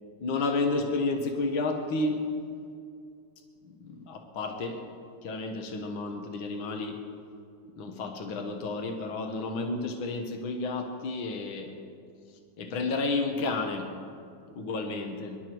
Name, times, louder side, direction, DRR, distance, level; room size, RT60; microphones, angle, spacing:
voice 1, 0.2-2.3 3.7-4.8 5.2-7.0 7.8-11.8 12.6-13.9 14.5-15.4, left 3 dB, 75° left, 4 dB, 2.1 m, -31 dB
25.0 x 11.5 x 4.6 m, 2.4 s
omnidirectional pair, 2.2 m